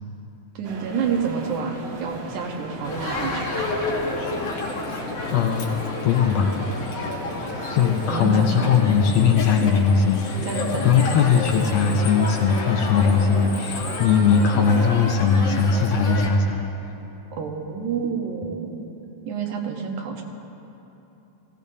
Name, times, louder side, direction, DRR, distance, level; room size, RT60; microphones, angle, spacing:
sound 1, 0.6-8.3, right 2 dB, 60° right, 2.2 m, -37 dB
voice 1, 0.6-3.3 8.1-9.0 10.4-10.9 17.4-18.8 19.3-20.2, right 6 dB, 85° right, 2 dB, 2.6 m, -28 dB
Crowd, 2.8-16.3, left 3 dB, 60° left, 2.1 m, -30 dB
voice 2, 5.3-5.7 6.0-6.6 7.7-16.6, left 6 dB, 75° left, 3 dB, 1.6 m, -20 dB
17.5 x 15.5 x 2.7 m, 3.0 s
omnidirectional pair, 3.4 m